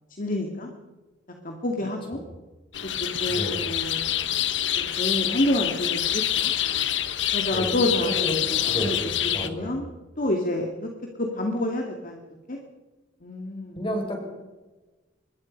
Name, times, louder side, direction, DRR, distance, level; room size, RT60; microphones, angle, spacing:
voice 1, 0.2-0.7 1.4-2.2 3.2-4.5 4.8-6.5 7.3-9.0 9.3-9.9 10.2-10.9 11.2-12.2 12.5-12.6 13.2-13.8, left 1 dB, 50° left, 2 dB, 2.3 m, -28 dB
sound 1, 2.7-9.5, left 11 dB, 80° left, 1.2 m, -26 dB
voice 2, 3.3-3.7 7.5-9.8 13.7-14.2, equal, 30° left, 2 dB, 6.5 m, -31 dB
24.5 x 21.5 x 5.4 m, 1.2 s
head